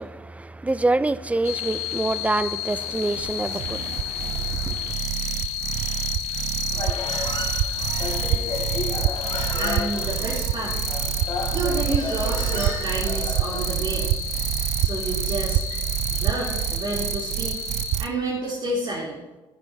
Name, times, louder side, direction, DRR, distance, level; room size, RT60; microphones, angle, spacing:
voice 1, 0.0-4.9, right 2 dB, 10° right, 0.4 m, -26 dB
sound 1, 1.4-18.0, left 10 dB, 80° left, 1.2 m, -32 dB
sound 2, 2.7-18.1, right 12 dB, 75° right, 0.4 m, -27 dB
Human voice, 6.7-13.8, left 4 dB, 50° left, 3.1 m, -33 dB
voice 2, 9.6-10.8 11.5-14.1 14.8-15.6 16.1-17.6 18.0-19.2, right 2 dB, 50° right, 3.3 m, -29 dB
13.0 x 11.0 x 2.8 m
supercardioid pair, 80°, 11 cm